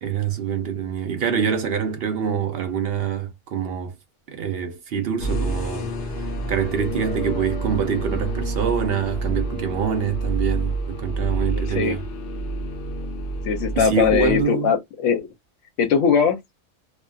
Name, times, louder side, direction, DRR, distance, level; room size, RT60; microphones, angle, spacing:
voice 1, 0.0-3.9 4.3-5.9 6.2-12.0 13.8-14.7, right 7 dB, 60° right, 0.6 m, -25 dB
sound 1, 5.2-14.4, right 2 dB, 55° left, 0.6 m, -28 dB
voice 2, 11.7-12.0 13.5-15.3 15.8-16.4, left 6 dB, 75° left, 0.9 m, -20 dB
2.4 x 2.3 x 2.5 m
omnidirectional pair, 1.4 m